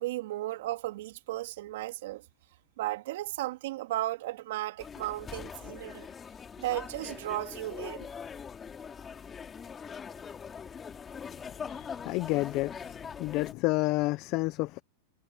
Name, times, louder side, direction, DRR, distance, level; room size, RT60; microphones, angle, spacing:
voice 1, 0.0-2.2 2.8-6.1 6.6-8.1, right 16 dB, 65° right, 3.1 m, -35 dB
sound 1, 4.8-13.5, left 6 dB, 20° left, 3.8 m, -42 dB
voice 2, 11.7-12.8 13.2-14.8, left 21 dB, 50° left, 1.2 m, -29 dB
hypercardioid pair, 115°, 0 cm